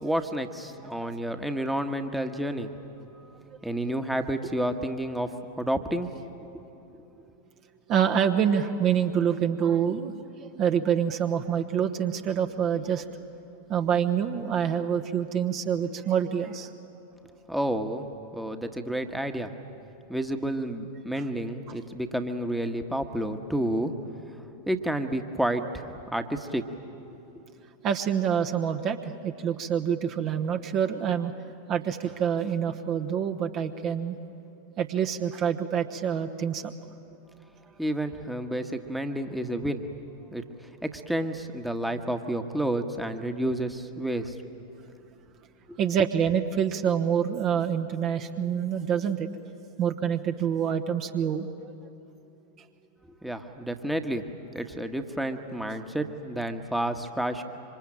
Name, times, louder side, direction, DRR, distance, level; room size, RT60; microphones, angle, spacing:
voice 1, 0.0-2.7 3.6-5.3 5.6-6.1 17.5-18.1 18.3-19.5 20.1-23.9 24.3-24.4 24.7-26.6 37.8-39.9 40.3-40.4 40.8-44.4 45.7-45.8 53.2-54.3 54.5-57.4, right 1 dB, ahead, 6 dB, 1.4 m, -30 dB
voice 2, 0.8-1.1 7.9-10.1 10.4-13.0 13.7-16.7 27.8-31.3 31.7-34.2 34.8-36.7 45.8-49.3 49.8-51.7, right 8 dB, 35° right, 6 dB, 1.2 m, -26 dB
26.5 x 25.0 x 8.9 m, 2.9 s
figure-of-eight pair, 90°, 0 cm